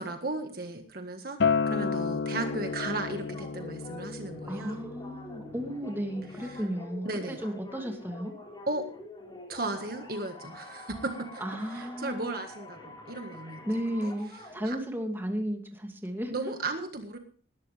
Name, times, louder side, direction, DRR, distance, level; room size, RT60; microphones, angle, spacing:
voice 1, 0.0-4.8 6.5-6.6 7.1-7.4 8.7-8.9 9.5-11.4 11.7-13.6 14.0-14.1 14.7-14.8 16.3-17.2, right 2 dB, 50° right, 5 dB, 1.7 m, -35 dB
Acoustic guitar, 1.4-6.6, left 5 dB, 60° left, 0.6 m, -32 dB
sound 1, 2.3-14.6, left 1 dB, 25° left, 4.3 m, -46 dB
voice 2, 4.5-8.3 11.4-12.4 13.6-16.4, equal, 10° right, 3 dB, 2.5 m, -34 dB
19.5 x 12.5 x 3.4 m, 0.43 s
head